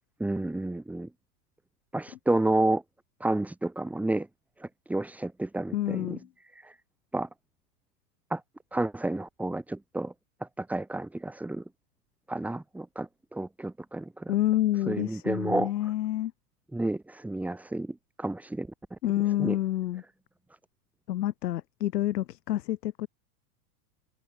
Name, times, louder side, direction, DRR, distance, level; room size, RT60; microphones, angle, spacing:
voice 1, 0.2-1.1 1.9-2.8 3.2-4.3 4.6-6.2 6.6-6.8 7.1-7.3 8.3-8.4 8.7-10.1 10.4-11.6 12.3-14.3 14.9-15.7 16.7-19.0 19.4-19.6, right 2 dB, 5° right, 1.8 m, -30 dB
voice 2, 5.7-6.3 14.3-16.3 19.0-20.0 21.1-23.1, left 13 dB, 80° left, 7.3 m, -28 dB
supercardioid pair, 165°, 48 cm